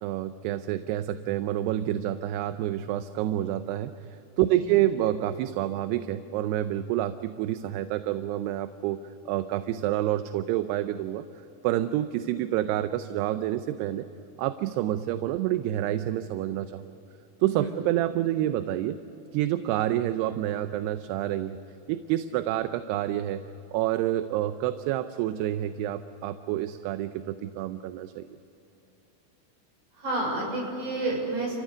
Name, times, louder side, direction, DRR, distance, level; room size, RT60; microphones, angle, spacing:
voice 1, 0.0-3.9 4.4-9.0 9.3-11.3 11.6-14.1 14.4-16.9 17.4-19.0 19.3-21.6 21.9-23.4 23.7-28.3, right 13 dB, 80° right, 10 dB, 2.7 m, -28 dB
voice 2, 4.4-4.8 17.6-17.7 30.0-31.6, right 2 dB, 45° right, -1 dB, 7.2 m, -30 dB
30.0 x 15.5 x 9.6 m, 3.0 s
omnidirectional pair, 4.9 m